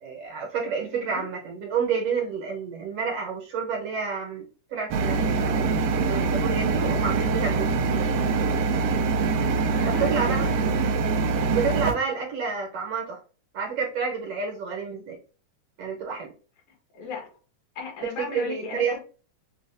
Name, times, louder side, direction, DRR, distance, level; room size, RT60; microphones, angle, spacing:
voice 1, 0.0-7.7 9.9-10.5 11.5-13.2 13.5-15.2 15.8-16.3 18.2-19.0, right 5 dB, 65° right, 0 dB, 1.7 m, -29 dB
voice 2, 0.9-1.3 9.5-10.5 16.9-17.3 17.8-19.0, left 4 dB, 70° left, -1 dB, 2.7 m, -36 dB
sound 1, 4.9-11.9, right 4 dB, 85° right, 2.0 m, -24 dB
6.2 x 2.4 x 2.5 m, 0.37 s
omnidirectional pair, 3.4 m